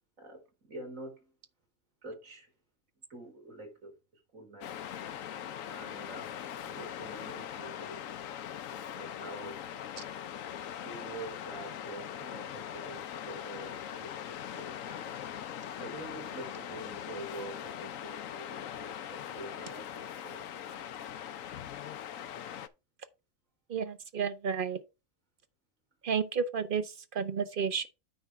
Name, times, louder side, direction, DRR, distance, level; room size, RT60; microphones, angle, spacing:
voice 1, 0.2-1.3 2.0-2.5 3.1-3.9 4.3-4.9 5.7-8.0 8.9-9.6 10.8-15.2 15.8-20.5, right 2 dB, 75° right, 3.9 m, -46 dB
Waves surf, 4.6-22.7, left 10 dB, 75° left, 1.1 m, -41 dB
voice 2, 23.7-24.8 26.0-27.9, right 6 dB, 45° right, 1.0 m, -32 dB
9.2 x 3.5 x 5.6 m
omnidirectional pair, 1.4 m